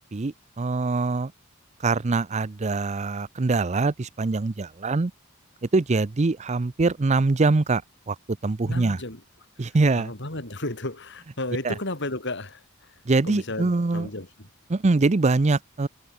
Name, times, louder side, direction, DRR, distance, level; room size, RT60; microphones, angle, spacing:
voice 1, 0.0-1.3 1.8-5.1 5.7-7.8 8.1-8.2 8.4-9.0 9.6-10.1 11.6-11.7 13.1-14.1 14.7-15.9, right 3 dB, 35° right, 0.6 m, -23 dB
voice 2, 8.6-9.2 9.6-12.9 13.2-14.5, left 2 dB, 60° left, 4.8 m, -34 dB
head